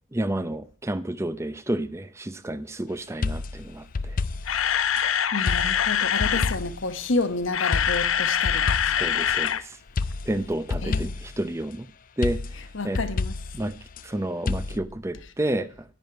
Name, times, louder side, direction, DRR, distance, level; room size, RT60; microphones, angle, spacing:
voice 1, 0.1-4.2 6.2-6.3 9.0-9.8 10.3-11.9 12.2-12.4 12.8-13.0 13.5-13.7 14.0-15.7, right 1 dB, 15° right, 0.5 m, -30 dB
sound 1, 3.2-5.1 5.5-6.9 7.7-9.5 10.0-11.4 12.2-14.1 14.5-14.8, left 3 dB, 45° left, 0.4 m, -30 dB
Camera, 4.2-6.6 7.3-9.6 9.9-10.0 10.5-10.6, left 8 dB, 85° left, 0.7 m, -24 dB
voice 2, 5.3-9.0 10.8-11.1 12.7-13.3, left 3 dB, 70° left, 1.2 m, -30 dB
10.5 x 9.3 x 4.5 m
head